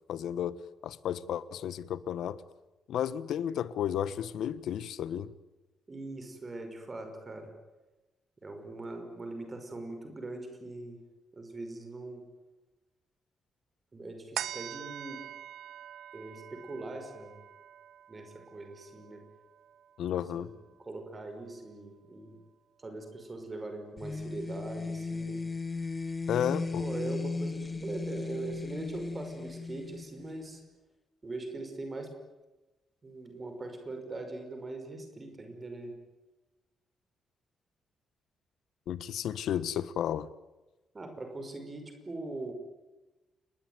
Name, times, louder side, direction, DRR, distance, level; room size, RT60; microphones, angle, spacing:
voice 1, 0.1-2.4 2.9-5.3 20.0-20.5 26.3-26.8 38.9-40.3, left 10 dB, 75° left, 1.3 m, -33 dB
voice 2, 5.9-7.5 8.4-11.0 11.3-12.2 13.9-15.2 16.1-17.4 18.1-19.2 20.1-20.5 20.9-22.4 22.8-25.4 26.8-30.6 31.2-32.1 33.0-35.9 40.9-42.5, right 2 dB, 20° right, 5.5 m, -41 dB
sound 1, 14.4-21.1 21.6-21.7, right 10 dB, 70° right, 0.9 m, -44 dB
sound 2, 24.0-30.6, left 4 dB, 15° left, 1.2 m, -36 dB
29.0 x 20.5 x 9.6 m
wide cardioid pair, 175°, 0 cm